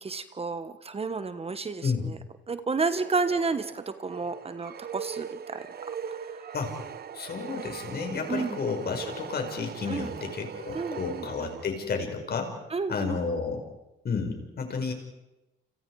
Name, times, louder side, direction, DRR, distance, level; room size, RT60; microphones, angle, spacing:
voice 1, 0.0-2.2 2.5-5.7 6.1-6.2 6.4-6.5 8.3-8.6 9.9-10.1 10.7-11.6 12.7-13.2, right 4 dB, 30° right, 11 dB, 1.3 m, -31 dB
sound 1, 2.9-12.0, right 7 dB, 50° right, 1.0 m, -40 dB
voice 2, 7.1-12.6 12.9-13.6 14.0-14.9, left 5 dB, 55° left, 5 dB, 5.3 m, -31 dB
29.0 x 27.5 x 4.8 m, 0.99 s
cardioid pair, 90°, 20 cm